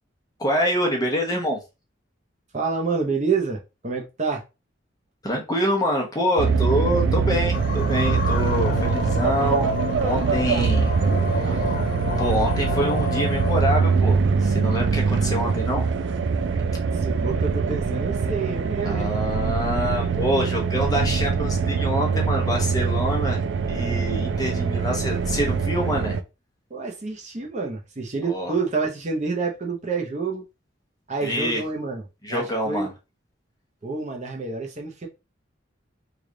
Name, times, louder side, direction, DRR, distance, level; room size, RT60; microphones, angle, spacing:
voice 1, 0.4-1.6 5.2-9.7 10.0-10.9 11.3-11.7 12.2-15.9 17.2-17.4 18.8-23.4 23.7-26.2 28.2-28.5 31.2-31.6 32.2-32.9, equal, 20° left, 0.8 m, -26 dB
voice 2, 2.5-4.4 16.9-19.1 25.8-26.1 26.7-30.4 31.1-32.9 33.8-35.1, right 4 dB, 35° right, 0.7 m, -28 dB
sound 1, 6.4-26.2, right 5 dB, 65° right, 0.4 m, -23 dB
sound 2, 7.5-13.7, left 5 dB, 45° left, 0.3 m, -30 dB
3.3 x 2.4 x 3.7 m
head